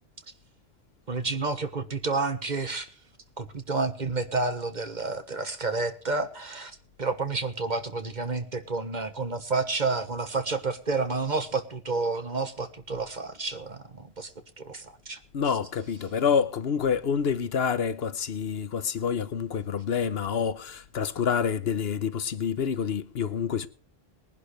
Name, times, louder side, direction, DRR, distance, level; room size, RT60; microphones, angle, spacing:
voice 1, 1.1-2.9 3.4-15.2, right 3 dB, 45° right, 1.5 m, -30 dB
voice 2, 15.3-23.7, left 7 dB, 70° left, 1.2 m, -27 dB
21.5 x 11.0 x 3.2 m
omnidirectional pair, 1.1 m